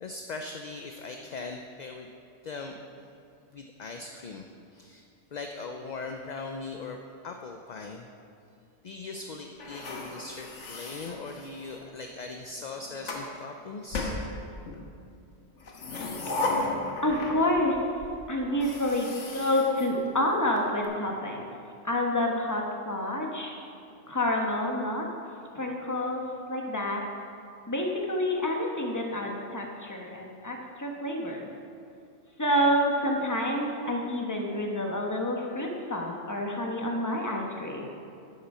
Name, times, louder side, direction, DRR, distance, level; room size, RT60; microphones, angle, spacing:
voice 1, 0.0-2.1 2.4-3.1 3.5-4.5 4.7-5.0 5.3-7.0 7.2-8.1 8.8-14.1, left 3 dB, 50° left, 4 dB, 0.6 m, -40 dB
sound 1, 9.6-11.9 12.6-13.3 13.9-14.8 15.6-17.7 18.0-18.1 18.5-20.6, left 2 dB, 85° left, 1.5 m, -35 dB
voice 2, 16.7-17.8 18.3-21.5 21.8-23.5 24.1-25.0 25.5-26.2 26.5-27.0 27.7-31.5 32.4-37.9, left 1 dB, 15° left, 0 dB, 1.1 m, -28 dB
9.9 x 8.8 x 5.5 m, 2.5 s
omnidirectional pair, 1.2 m